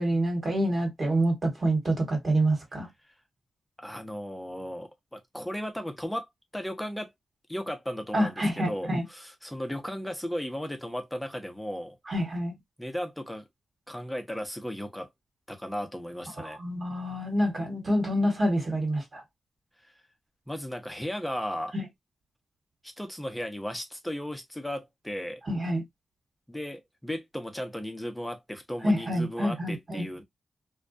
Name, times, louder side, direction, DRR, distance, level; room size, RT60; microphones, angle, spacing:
voice 1, 0.0-2.9 8.1-9.0 12.1-12.5 16.4-19.2 21.7-21.8 25.5-25.8 28.8-30.0, right 1 dB, 50° right, 1.3 m, -27 dB
voice 2, 3.8-6.3 6.5-7.1 7.5-12.0 12.8-13.4 13.9-15.1 15.5-16.6 19.8-19.9 20.5-21.7 22.8-25.4 26.5-30.2, equal, 5° left, 0.7 m, -35 dB
2.3 x 2.2 x 2.5 m
cardioid pair, 55°, 0 cm